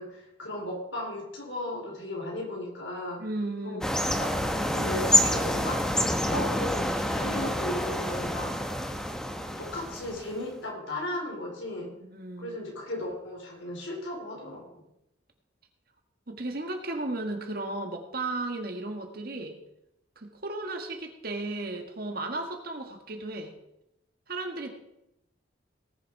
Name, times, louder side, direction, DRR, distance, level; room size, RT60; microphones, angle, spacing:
voice 1, 0.0-3.2 3.6-4.4 4.6-8.6 9.6-11.9 12.4-14.7, left 1 dB, 85° left, 0 dB, 4.1 m, -36 dB
voice 2, 3.2-3.8 12.1-12.6 16.3-19.6 20.2-23.5 24.3-24.7, right 2 dB, 50° right, 4 dB, 1.7 m, -34 dB
sound 1, 3.8-10.4, left 1 dB, 5° left, 1.0 m, -27 dB
18.5 x 7.1 x 4.7 m, 0.85 s
head